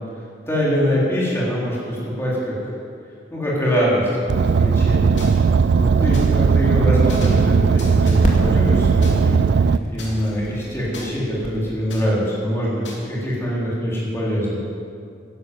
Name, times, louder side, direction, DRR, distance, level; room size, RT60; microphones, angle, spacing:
voice 1, 0.5-2.6 3.3-4.1 4.4-5.2 5.8-14.6, equal, 15° left, -6 dB, 3.7 m, -23 dB
Car, 4.3-9.8, right 5 dB, 65° right, 0.3 m, -17 dB
sound 1, 5.2-5.3 6.1-6.3 7.1-7.5 7.8-8.2 9.0-9.1 10.0-11.1 11.9-12.1 12.8-12.9, left 3 dB, 80° left, 2.9 m, -38 dB
sound 2, 6.5-11.6, equal, 45° left, 2.3 m, -28 dB
11.5 x 11.0 x 7.7 m, 2.4 s
head